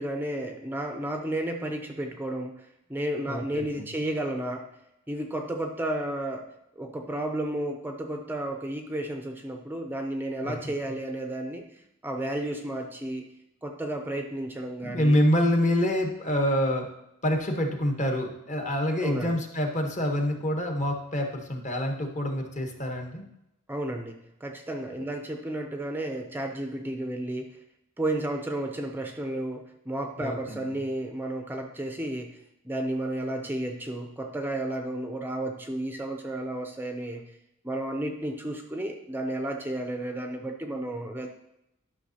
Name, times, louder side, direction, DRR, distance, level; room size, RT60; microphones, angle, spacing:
voice 1, 0.0-4.7 5.1-13.3 13.6-15.2 19.0-19.4 23.7-27.6 28.0-32.4 32.6-37.3 37.6-41.3, right 1 dB, 10° right, 4 dB, 0.5 m, -32 dB
voice 2, 3.3-3.9 10.4-10.5 14.8-16.9 17.2-23.2 25.0-25.1 30.2-30.6, equal, 35° left, 3 dB, 1.0 m, -26 dB
11.0 x 5.7 x 2.8 m, 0.86 s
head